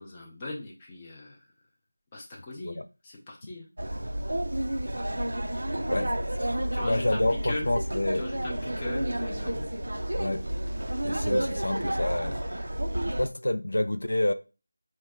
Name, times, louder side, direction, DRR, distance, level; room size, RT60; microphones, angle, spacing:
voice 1, 0.0-1.4 2.1-3.7 5.8-6.1 6.7-7.7 8.1-9.7, left 2 dB, 10° left, 0.5 m, -39 dB
sound 1, 3.8-13.3, right 1 dB, 65° right, 0.4 m, -30 dB
voice 2, 6.4-8.3 10.2-10.5 11.0-12.4 13.2-14.3, left 1 dB, 85° left, 0.4 m, -28 dB
4.3 x 2.1 x 3.5 m
figure-of-eight pair, 180°, 0 cm